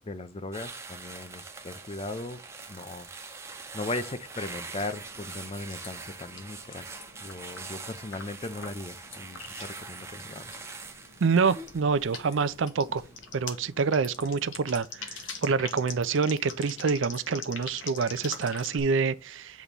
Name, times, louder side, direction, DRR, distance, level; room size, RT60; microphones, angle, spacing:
voice 1, 0.1-2.4 2.7-3.1 3.7-6.8 7.2-10.7, left 2 dB, 30° left, 0.5 m, -38 dB
sound 1, 0.5-13.9 14.2-14.5, right 3 dB, 15° right, 0.7 m, -44 dB
sound 2, 4.3-18.8, left 5 dB, 60° left, 1.2 m, -45 dB
voice 2, 11.2-13.0 13.3-19.6, right 5 dB, 65° right, 0.5 m, -27 dB
8.3 x 3.0 x 5.2 m
head